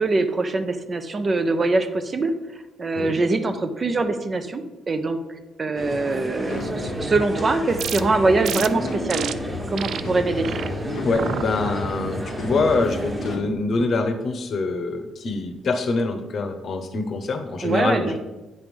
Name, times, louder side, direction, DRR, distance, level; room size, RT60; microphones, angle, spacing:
voice 1, 0.0-2.3 2.8-5.2 5.6-9.3 9.7-10.6 17.6-18.2, right 3 dB, 35° right, 8 dB, 0.6 m, -23 dB
sound 1, 5.8-13.4, right 1 dB, 20° right, 1.3 m, -31 dB
sound 2, 6.5-13.5, left 4 dB, 85° left, 0.8 m, -35 dB
sound 3, 7.8-8.0 8.4-8.7 9.1-9.3 9.8-10.0 10.4-10.7 11.1-11.4 11.9-12.3, right 9 dB, 70° right, 0.3 m, -30 dB
voice 2, 11.0-18.2, left 3 dB, 55° left, 7 dB, 0.8 m, -25 dB
8.3 x 3.2 x 5.3 m, 1.1 s
cardioid pair, 90°, 0 cm